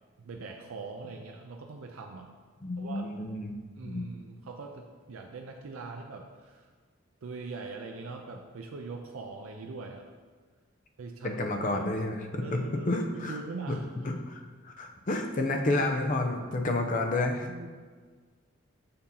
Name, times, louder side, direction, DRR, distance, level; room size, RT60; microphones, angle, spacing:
voice 1, 0.2-2.3 2.8-3.1 3.8-6.7 7.2-10.0 11.0-11.4 11.8-11.9 12.4-13.9 17.5-17.7, right 4 dB, 90° right, 2 dB, 0.5 m, -42 dB
voice 2, 2.6-3.6 3.8-4.1 11.2-13.4 13.7-13.8 14.0-17.7, left 2 dB, 40° left, 3 dB, 0.6 m, -30 dB
6.8 x 2.8 x 5.3 m, 1.5 s
head